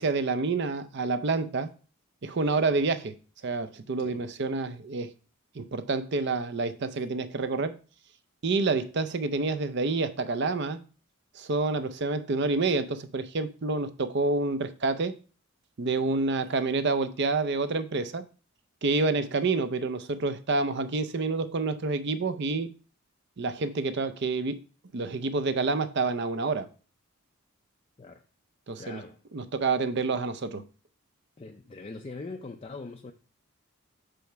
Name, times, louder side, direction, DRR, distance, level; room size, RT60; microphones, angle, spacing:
voice 1, 0.0-1.7 2.2-3.1 3.4-5.1 5.6-7.8 8.4-10.8 11.4-15.2 15.8-18.3 18.8-22.7 23.4-24.6 24.9-26.7 28.7-29.0 29.3-30.6, right 3 dB, 50° right, 0.5 m, -28 dB
voice 2, 28.8-29.2 31.4-33.1, left 3 dB, 25° left, 0.4 m, -41 dB
5.8 x 5.1 x 4.5 m
head